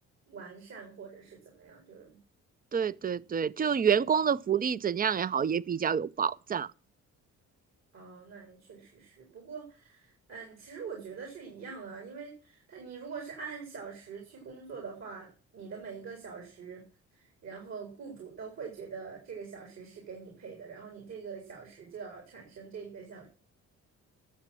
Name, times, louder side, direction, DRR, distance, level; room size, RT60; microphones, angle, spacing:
voice 1, 0.3-2.2 7.9-16.9 17.1-23.3, right 5 dB, 60° right, 4.2 m, -44 dB
voice 2, 2.7-6.7, right 7 dB, 30° right, 0.5 m, -28 dB
11.5 x 7.4 x 7.5 m
cardioid pair, 90°, 30 cm